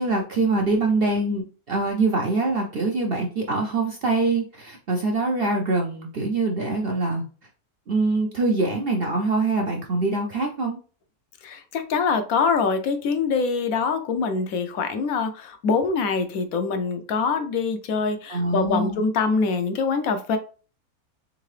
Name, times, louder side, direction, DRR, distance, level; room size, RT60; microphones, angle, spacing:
voice 1, 0.0-7.2 7.9-10.8 18.3-19.0, right 3 dB, 55° right, 1 dB, 0.7 m, -24 dB
voice 2, 11.4-20.4, left 5 dB, 70° left, 7 dB, 1.0 m, -24 dB
3.8 x 3.6 x 3.1 m, 0.37 s
omnidirectional pair, 1.6 m